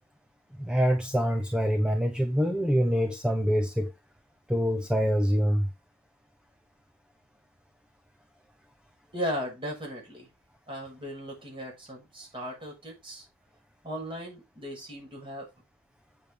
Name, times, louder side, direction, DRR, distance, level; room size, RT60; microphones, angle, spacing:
voice 1, 0.6-3.9 4.5-5.7, equal, 5° right, 0.9 m, -25 dB
voice 2, 9.1-10.3 10.7-13.3 13.8-15.5, equal, 25° right, 6.6 m, -37 dB
8.7 x 7.2 x 3.7 m
head